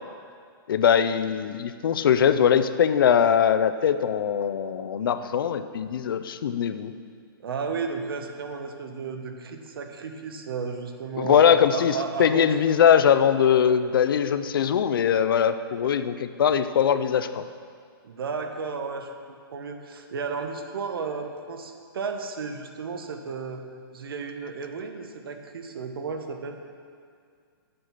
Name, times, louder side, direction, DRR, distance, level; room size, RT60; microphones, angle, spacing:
voice 1, 0.7-6.9 11.2-17.4, left 8 dB, 60° left, 11 dB, 0.5 m, -21 dB
voice 2, 7.4-12.5 18.0-23.6 23.9-26.6, right 5 dB, 65° right, 5 dB, 1.1 m, -33 dB
8.1 x 7.7 x 5.8 m, 2.1 s
hypercardioid pair, 170°, 13 cm